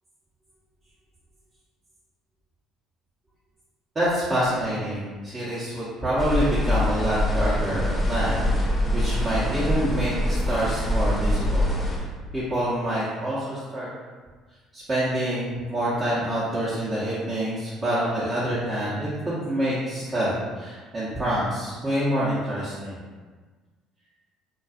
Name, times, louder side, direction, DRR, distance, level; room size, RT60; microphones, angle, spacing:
voice 1, 3.9-8.7 8.9-12.1 12.3-13.9 14.7-23.0, right 1 dB, 30° right, -10 dB, 0.7 m, -27 dB
sound 1, 6.2-12.0, left 1 dB, 15° left, 0.6 m, -24 dB
2.6 x 2.3 x 2.3 m, 1.4 s
hypercardioid pair, 65°, 0 cm